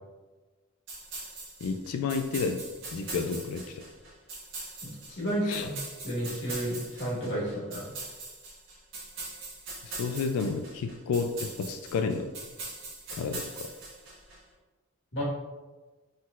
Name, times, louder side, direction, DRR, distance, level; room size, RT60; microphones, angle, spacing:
sound 1, 0.9-14.4, right 3 dB, 65° right, 1.2 m, -42 dB
voice 1, 1.6-3.8 5.4-5.7 9.8-12.3 13.1-13.7, left 4 dB, 85° left, 9 dB, 0.3 m, -31 dB
voice 2, 4.8-5.7 6.0-7.9 15.1-15.2, equal, 55° left, -6 dB, 1.4 m, -32 dB
4.2 x 3.8 x 2.4 m, 1.3 s
head